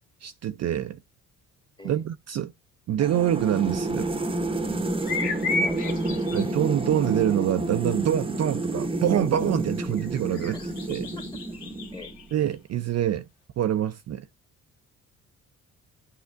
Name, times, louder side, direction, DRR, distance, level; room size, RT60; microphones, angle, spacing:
voice 1, 0.2-1.0 1.8-2.5 2.9-4.1 6.3-10.6 10.9-11.0 12.3-13.3 13.6-14.3, right 11 dB, 45° right, 0.4 m, -25 dB
sound 1, 3.0-12.3, right 2 dB, 15° right, 0.8 m, -30 dB
sound 2, 5.1-6.5 10.0-12.5, left 3 dB, 75° left, 1.7 m, -32 dB
voice 2, 5.5-6.2 10.5-10.7 11.2-11.3 11.9-12.1, left 2 dB, 10° left, 1.4 m, -42 dB
8.2 x 4.8 x 2.4 m
hypercardioid pair, 55°, 38 cm